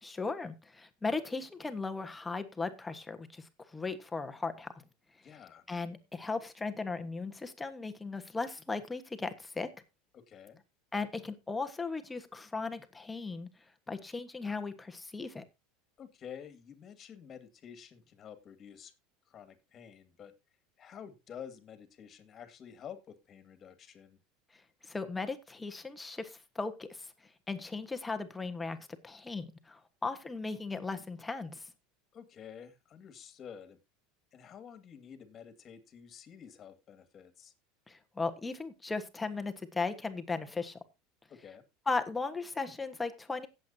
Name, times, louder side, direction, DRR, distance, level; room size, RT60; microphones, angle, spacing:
voice 1, 0.0-4.7 5.7-9.7 10.9-13.5 13.9-15.4 24.8-31.7 37.9-40.8 41.9-43.5, left 4 dB, 10° left, 1.3 m, -37 dB
voice 2, 5.2-5.6 10.1-10.6 16.0-18.9 19.3-20.3 20.8-24.2 32.1-33.8 34.3-37.5 41.3-41.6, left 8 dB, 35° left, 2.1 m, -50 dB
17.0 x 7.9 x 2.8 m
supercardioid pair, 120°, 0 cm